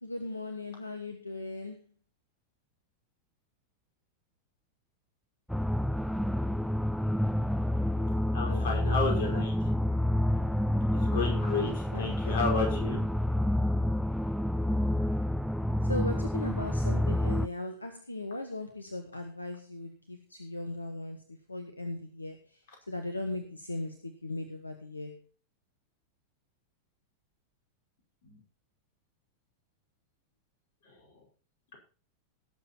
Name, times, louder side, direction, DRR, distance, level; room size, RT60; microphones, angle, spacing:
voice 1, 0.0-1.8 8.4-9.4 11.6-12.4 12.7-13.0 15.8-21.2 21.5-22.5 22.9-25.2, left 2 dB, 80° left, 7 dB, 1.3 m, -38 dB
sound 1, 5.5-17.5, left 1 dB, ahead, 0.5 m, -28 dB
voice 2, 8.3-9.7 10.9-13.0 28.2-28.4 30.9-31.0 31.7-31.8, left 4 dB, 55° left, 1 dB, 5.4 m, -32 dB
18.0 x 7.4 x 4.4 m, 0.35 s
figure-of-eight pair, 90°, 0 cm